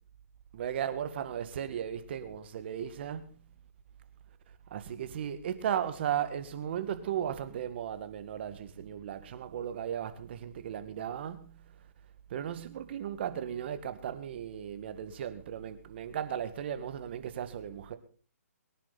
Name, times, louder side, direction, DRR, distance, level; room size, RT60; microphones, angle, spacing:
voice 1, 0.5-3.3 4.7-11.5 12.3-18.0, right 9 dB, 40° right, 1.8 m, -36 dB
23.5 x 10.5 x 4.2 m
hypercardioid pair, 150°, 9 cm